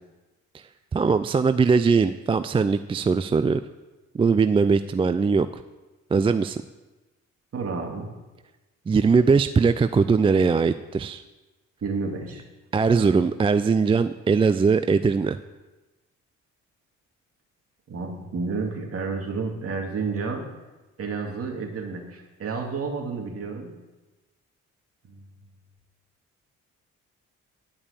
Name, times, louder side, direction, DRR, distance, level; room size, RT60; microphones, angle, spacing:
voice 1, 0.9-3.6 4.1-5.6 6.1-6.6 8.9-11.2 12.7-15.4, right 5 dB, 20° right, 11 dB, 0.3 m, -21 dB
voice 2, 7.5-8.1 11.8-12.4 12.9-13.3 17.9-20.5 21.0-23.7 25.1-25.2, right 4 dB, 50° right, 1 dB, 2.5 m, -31 dB
11.0 x 5.5 x 8.3 m, 1.1 s
cardioid pair, 90°, 30 cm